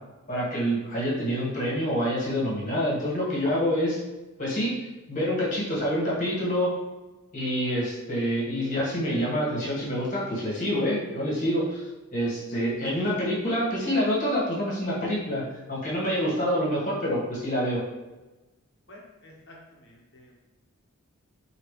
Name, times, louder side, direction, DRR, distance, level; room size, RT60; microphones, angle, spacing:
voice 1, 0.3-4.0 4.4-4.8 5.1-6.7 7.3-11.8 12.1-15.4 15.7-17.8, equal, 35° left, -6 dB, 1.5 m, -27 dB
voice 2, 18.9-20.4, left 1 dB, 55° left, -2 dB, 1.0 m, -51 dB
4.9 x 2.9 x 3.2 m, 1.1 s
head